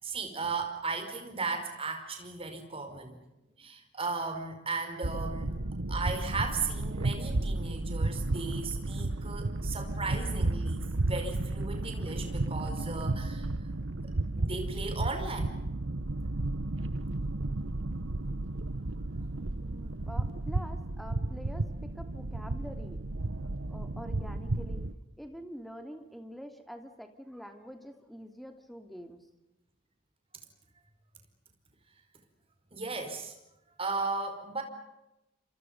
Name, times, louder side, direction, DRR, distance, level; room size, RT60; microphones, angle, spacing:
voice 1, 0.0-3.2 3.6-5.5 5.9-13.5 14.4-15.6 32.7-33.3 33.8-34.6, right 4 dB, 30° right, 5 dB, 5.2 m, -36 dB
sound 1, 5.0-24.9, right 2 dB, 80° right, 1.1 m, -33 dB
voice 2, 19.3-23.0 23.7-24.9 25.2-29.3, equal, ahead, 6 dB, 2.7 m, -46 dB
30.0 x 26.5 x 5.4 m, 0.91 s
head